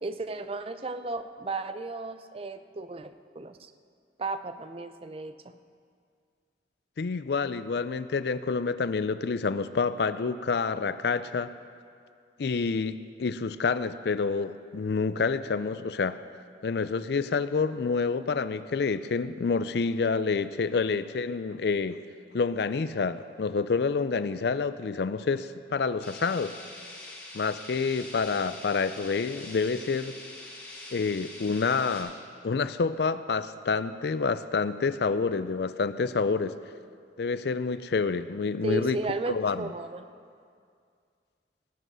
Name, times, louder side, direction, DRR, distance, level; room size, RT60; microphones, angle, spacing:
voice 1, 0.0-3.7 4.2-5.6 38.6-40.1, right 2 dB, 30° right, 10 dB, 0.5 m, -34 dB
voice 2, 7.0-11.5 12.4-16.2 16.6-22.0 22.3-26.6 27.3-30.1 30.9-32.2 32.4-36.5 37.2-39.0 39.3-39.7, left 4 dB, 65° left, 13 dB, 0.4 m, -28 dB
sound 1, 26.0-32.0, left 2 dB, 10° left, 4.4 m, -44 dB
19.0 x 7.9 x 6.2 m, 2.2 s
head